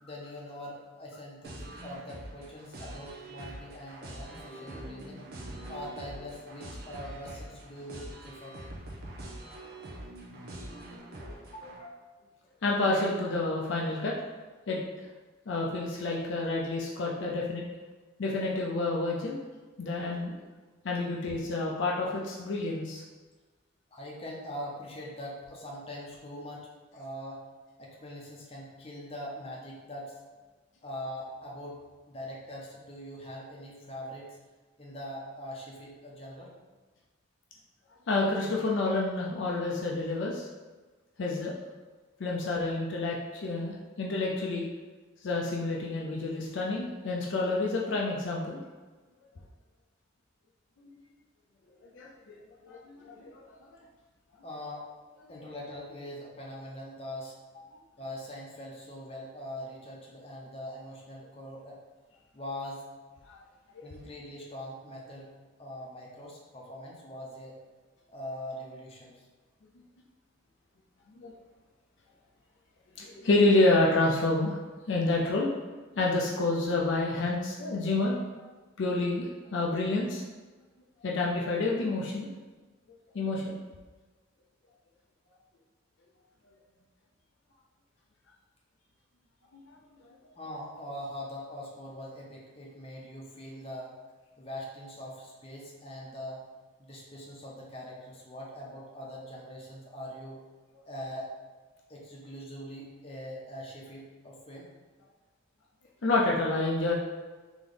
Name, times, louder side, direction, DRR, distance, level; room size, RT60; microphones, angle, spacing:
voice 1, 0.0-5.2 5.7-8.6 11.5-11.9 23.9-27.4 27.8-30.1 30.8-31.8 32.1-34.4 34.8-36.5 54.4-54.9 55.3-57.3 58.0-61.8 62.3-62.9 63.8-65.3 65.6-67.6 68.1-69.3 90.4-93.9 94.4-96.5 96.8-100.4 100.9-101.3 101.9-104.7, left 1 dB, 30° left, -3 dB, 0.7 m, -42 dB
sound 1, 1.4-11.8, right 1 dB, 50° right, 0.7 m, -44 dB
voice 2, 12.6-14.1 14.7-14.8 15.5-17.6 18.2-19.4 19.8-20.4 20.8-23.0 38.1-40.5 41.2-41.5 42.2-43.2 43.4-44.7 45.2-48.6 50.8-50.9 51.9-52.3 52.6-53.5 63.3-63.4 71.2-71.3 73.0-74.6 74.9-75.5 75.9-78.5 78.8-80.2 81.0-82.3 83.1-83.6 106.0-106.9, left 2 dB, 60° left, -3 dB, 0.5 m, -28 dB
3.4 x 3.0 x 3.8 m, 1.3 s
head